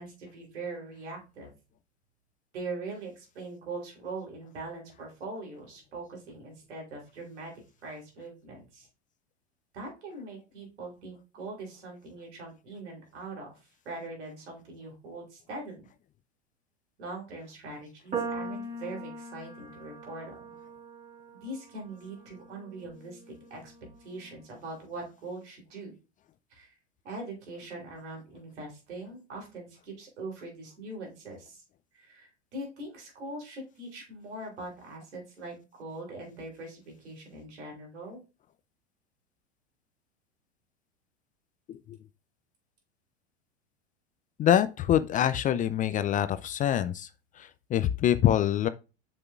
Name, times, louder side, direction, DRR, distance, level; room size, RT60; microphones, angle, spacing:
voice 1, 0.0-1.5 2.5-7.5 7.8-8.9 9.7-13.5 13.9-15.9 17.0-20.4 21.4-23.7 24.0-25.9 26.5-26.7 27.0-31.6 31.9-38.2, right 2 dB, 80° right, 3.4 m, -42 dB
sound 1, 18.1-24.5, right 3 dB, 25° right, 2.6 m, -41 dB
voice 2, 44.4-47.1 47.4-48.7, left 10 dB, 25° left, 0.4 m, -25 dB
7.6 x 6.0 x 2.4 m
hypercardioid pair, 90°, 34 cm